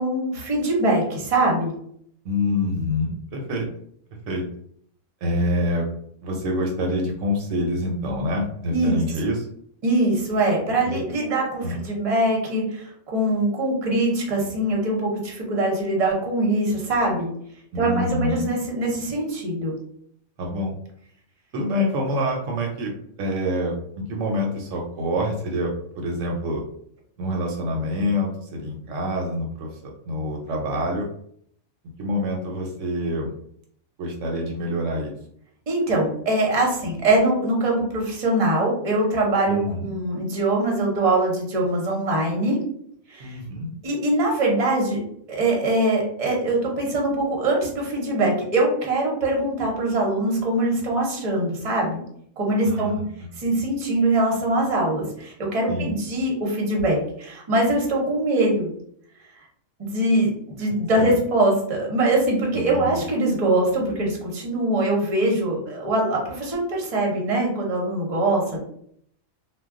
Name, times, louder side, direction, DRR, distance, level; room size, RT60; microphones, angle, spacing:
voice 1, 0.0-1.7 8.7-9.0 9.8-17.3 17.8-19.7 35.7-42.6 43.1-43.4 43.8-45.0 45.3-52.0 52.4-53.0 53.4-58.7 59.8-68.6, right 1 dB, 35° right, -1 dB, 0.7 m, -23 dB
voice 2, 2.2-3.7 4.3-4.4 5.2-5.9 6.2-9.5 10.8-11.0 11.6-11.8 17.7-18.4 20.4-20.8 21.5-22.9 23.2-26.6 27.2-31.1 32.0-33.3 34.0-35.1 39.5-39.9 43.2-43.7 52.6-53.3 55.7-55.9 60.6-60.7 61.0-61.1 62.5-63.0, left 1 dB, 70° right, 0 dB, 0.9 m, -26 dB
2.3 x 2.2 x 3.5 m, 0.67 s
omnidirectional pair, 1.4 m